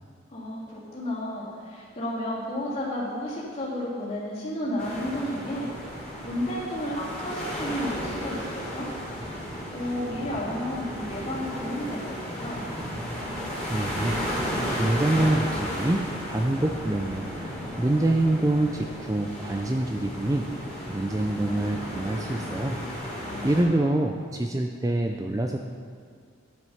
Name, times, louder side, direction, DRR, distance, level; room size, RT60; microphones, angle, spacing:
voice 1, 0.3-5.7 6.2-8.9 9.7-12.6 23.2-24.0, left 1 dB, 30° left, -7 dB, 3.1 m, -32 dB
sound 1, 4.8-23.6, equal, 5° left, 3.2 m, -34 dB
voice 2, 13.7-14.2 14.7-20.5 20.9-22.8 23.4-25.6, right 1 dB, 15° right, 3 dB, 0.4 m, -26 dB
11.0 x 7.7 x 5.6 m, 2.1 s
head